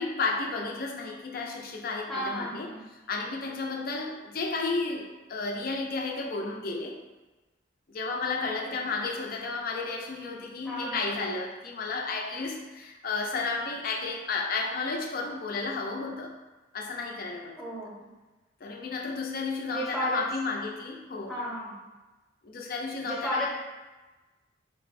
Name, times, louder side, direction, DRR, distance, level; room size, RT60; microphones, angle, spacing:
voice 1, 0.0-2.7 3.1-7.0 7.9-16.3 16.7-17.7 18.6-21.3 22.4-23.5, left 3 dB, 50° left, 1 dB, 0.5 m, -32 dB
voice 2, 2.1-2.8 8.5-8.6 10.6-11.1 17.6-18.1 19.7-20.3 21.3-21.8 23.0-23.5, equal, ahead, -5 dB, 0.8 m, -33 dB
4.0 x 2.1 x 4.1 m, 1.2 s
head